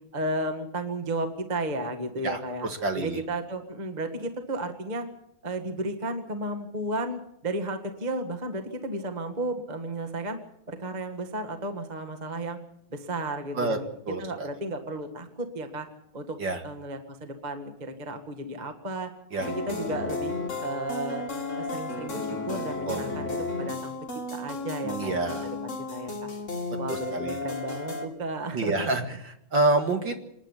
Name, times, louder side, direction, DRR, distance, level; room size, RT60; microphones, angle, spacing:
voice 1, 0.1-2.7 2.9-5.0 5.4-10.4 10.7-12.6 12.9-13.9 14.2-15.9 16.1-16.4 16.6-19.1 19.5-20.3 20.6-21.2 21.6-23.9 24.3-26.2 26.8-28.9, right 1 dB, 20° right, 6 dB, 1.3 m, -33 dB
voice 2, 2.2-3.2 13.5-13.8 14.1-14.5 16.4-16.6 19.3-19.5 22.9-23.0 24.8-25.5 26.9-27.4 28.5-30.2, right 2 dB, 45° right, 5 dB, 2.3 m, -28 dB
sound 1, 19.4-28.1, left 3 dB, 25° left, 2.9 m, -33 dB
27.0 x 10.5 x 9.9 m, 0.76 s
omnidirectional pair, 3.4 m